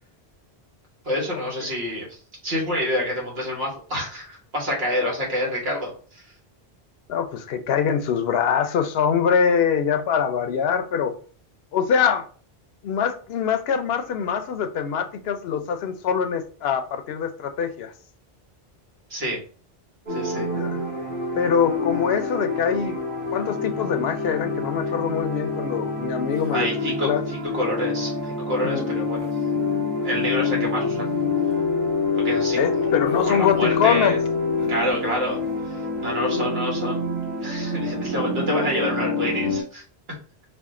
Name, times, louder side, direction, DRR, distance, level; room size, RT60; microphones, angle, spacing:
voice 1, 1.0-2.2 2.4-6.2 19.1-19.4 20.1-20.5 26.5-29.2 30.0-31.1 32.1-34.2 34.7-35.4 35.7-37.0 37.4-39.8, equal, 70° right, 1.8 m, -27 dB
voice 2, 7.1-11.1 11.7-12.3 12.8-17.9 20.3-20.8 21.3-23.0 23.3-26.7 27.0-27.2 28.6-28.8 32.5-34.2, left 7 dB, 70° left, 0.8 m, -24 dB
sound 1, 20.1-39.6, left 3 dB, 30° right, 2.1 m, -26 dB
5.2 x 2.5 x 3.6 m
omnidirectional pair, 1.1 m